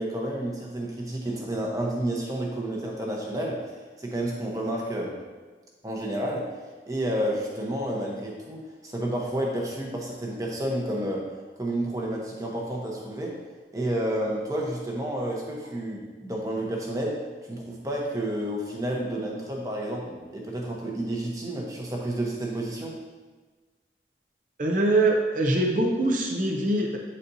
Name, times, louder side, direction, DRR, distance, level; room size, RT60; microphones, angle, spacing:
voice 1, 0.0-3.6 4.0-5.1 5.8-6.5 6.9-11.3 11.6-13.4 13.7-22.9, right 1 dB, 20° right, -2 dB, 0.9 m, -30 dB
voice 2, 24.6-27.0, right 2 dB, 45° right, 0 dB, 0.7 m, -23 dB
8.8 x 4.2 x 2.7 m, 1.3 s
head